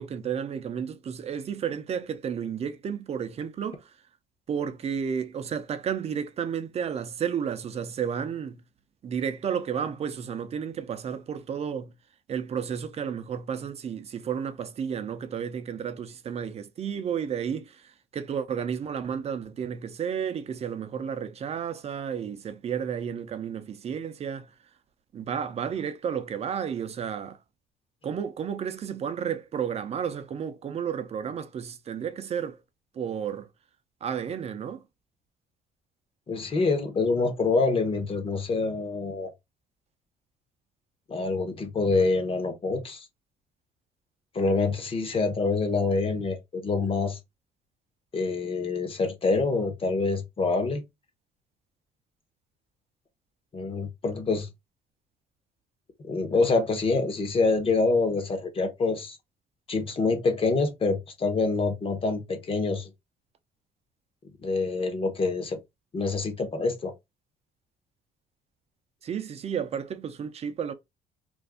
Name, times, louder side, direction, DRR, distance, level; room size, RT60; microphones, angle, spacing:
voice 1, 0.0-3.9 4.5-8.6 9.0-11.9 12.3-24.5 25.1-27.4 28.0-32.6 32.9-33.5 34.0-34.8 69.0-70.7, right 7 dB, 40° right, 0.5 m, -32 dB
voice 2, 36.3-39.3 41.1-43.1 44.3-47.2 48.1-50.8 53.5-54.5 56.1-59.2 59.7-62.9 64.4-65.6 65.9-66.9, left 3 dB, 35° left, 0.9 m, -26 dB
2.6 x 2.3 x 3.5 m
cardioid pair, 110°, 17 cm